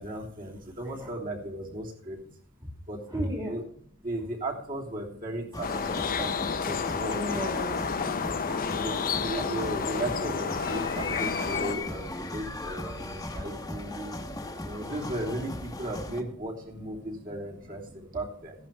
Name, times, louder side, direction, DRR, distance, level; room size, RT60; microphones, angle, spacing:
voice 1, 0.0-2.2 2.9-3.6 4.0-6.3 6.6-7.2 8.7-14.2 14.6-18.5, right 1 dB, 40° right, -1 dB, 3.3 m, -36 dB
voice 2, 3.1-3.6 7.1-7.9 12.8-13.5 14.0-14.6 17.1-17.2 17.8-18.0, equal, 15° right, 0 dB, 2.1 m, -37 dB
sound 1, 5.5-16.2, left 2 dB, 15° left, 1.3 m, -37 dB
sound 2, 5.6-11.8, left 5 dB, 40° left, 0.7 m, -30 dB
15.5 x 11.0 x 3.5 m, 0.63 s
head